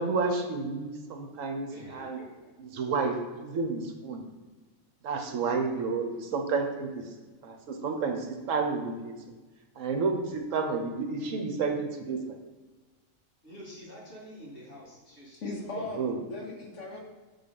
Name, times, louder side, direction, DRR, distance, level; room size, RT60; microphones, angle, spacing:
voice 1, 0.0-2.2 2.6-4.2 5.0-7.2 7.4-9.1 9.8-12.3 15.9-16.2, right 4 dB, 70° right, 4 dB, 1.1 m, -31 dB
voice 2, 1.7-2.5 13.4-16.1, equal, 40° left, -7 dB, 2.4 m, -48 dB
voice 3, 15.4-17.0, left 2 dB, 65° left, 0 dB, 1.2 m, -38 dB
6.0 x 4.0 x 5.2 m, 1.2 s
omnidirectional pair, 1.4 m